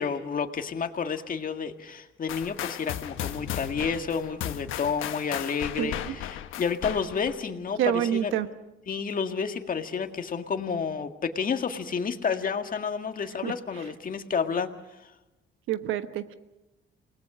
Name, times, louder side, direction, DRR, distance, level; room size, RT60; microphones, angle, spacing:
voice 1, 0.0-8.3 8.9-14.7, left 6 dB, 45° left, 6 dB, 1.9 m, -30 dB
sound 1, 2.3-7.4, left 11 dB, 90° left, 1.2 m, -35 dB
voice 2, 5.8-6.1 7.8-8.5 13.4-13.5 15.7-16.3, right 11 dB, 90° right, 11 dB, 1.2 m, -27 dB
28.5 x 19.5 x 6.2 m, 0.99 s
cardioid pair, 90°, 20 cm